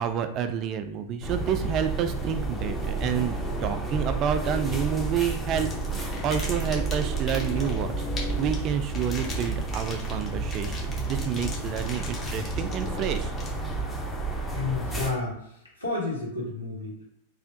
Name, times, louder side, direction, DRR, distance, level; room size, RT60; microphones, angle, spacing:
voice 1, 0.0-3.3 3.6-13.3, right 8 dB, 35° right, 8 dB, 0.3 m, -29 dB
sound 1, 1.2-15.1, right 3 dB, 10° left, 0.6 m, -31 dB
sound 2, 5.4-13.9, left 3 dB, 25° left, 0.9 m, -41 dB
voice 2, 14.5-17.0, left 3 dB, 90° left, -5 dB, 1.3 m, -31 dB
3.3 x 2.4 x 2.6 m, 0.74 s
figure-of-eight pair, 90°, 0 cm